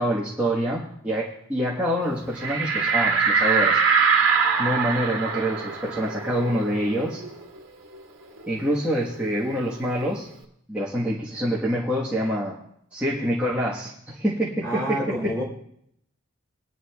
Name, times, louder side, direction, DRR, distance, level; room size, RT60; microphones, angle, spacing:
voice 1, 0.0-3.8 4.6-7.2 8.5-10.3 10.7-12.6 12.9-15.4, equal, 5° right, -7 dB, 1.3 m, -26 dB
sound 1, 2.4-7.6 7.9-8.0 8.4-10.0, right 5 dB, 55° right, 1.7 m, -23 dB
voice 2, 14.6-15.4, equal, 10° left, -6 dB, 4.0 m, -28 dB
20.5 x 11.0 x 2.3 m, 0.70 s
head